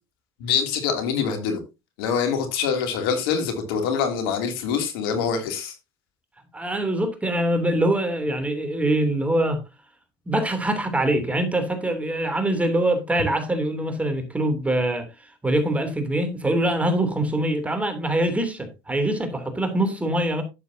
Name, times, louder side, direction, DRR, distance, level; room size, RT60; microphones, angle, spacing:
voice 1, 0.4-1.6 2.0-5.7, left 6 dB, 75° left, 2.9 m, -25 dB
voice 2, 6.5-9.6 10.3-15.1 15.4-20.4, right 1 dB, 10° right, 3.1 m, -24 dB
11.5 x 8.1 x 2.8 m
supercardioid pair, 95°, 12 cm